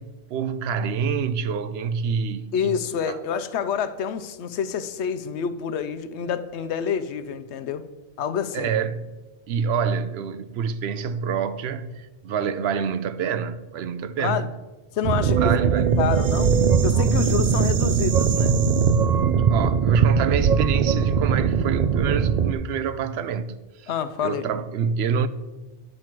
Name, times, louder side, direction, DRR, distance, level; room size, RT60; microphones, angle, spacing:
voice 1, 0.0-2.7 3.1-3.2 8.5-9.1 9.5-14.5 15.3-16.0 19.5-23.9 24.2-25.3, right 6 dB, 75° right, 0.8 m, -27 dB
voice 2, 2.5-7.8 8.2-8.7 14.2-14.5 14.9-15.5 16.0-16.6 16.8-18.6 23.9-24.5, left 7 dB, 90° left, 0.9 m, -27 dB
sound 1, 15.0-22.5, right 6 dB, 55° right, 0.5 m, -20 dB
9.9 x 4.5 x 7.5 m
omnidirectional pair, 1.1 m